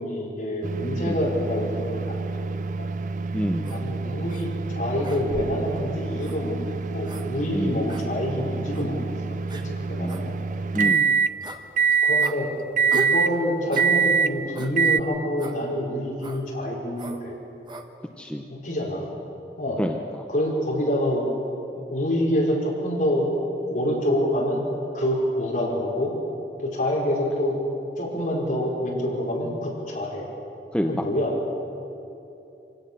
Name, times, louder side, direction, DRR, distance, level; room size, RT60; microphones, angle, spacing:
voice 1, 0.0-2.5 2.8-2.9 3.7-9.1 9.5-10.3 12.0-12.5 12.9-17.3 18.5-19.1 19.6-19.8 20.3-21.3 21.9-23.3 23.7-24.6 24.9-26.1 26.6-27.6 28.0-30.2 30.9-31.3, left 1 dB, 50° left, -3 dB, 4.9 m, -27 dB
sound 1, 0.6-11.3 11.8-12.3 12.8-13.3 13.8-14.3 14.8-15.0, right 5 dB, 45° right, 0.5 m, -25 dB
voice 2, 3.3-3.8 7.5-7.8 10.0-10.3 10.7-11.1 18.2-18.5 19.8-19.9 30.7-31.0, equal, 5° left, 3 dB, 0.7 m, -27 dB
sound 2, 3.6-3.8 4.3-4.5 5.0-5.6 6.2-6.4 7.0-7.3 7.9-8.1 8.7-8.9 9.5-9.7 10.1-10.2 10.8-11.0 11.4-11.6 12.2-12.4 12.9-13.2 13.7-13.9 14.6-14.8 15.4-15.6 16.2-16.4 17.0-17.2 17.7-17.9, right 2 dB, 25° right, 1.2 m, -37 dB
25.5 x 17.0 x 6.9 m, 2.8 s
head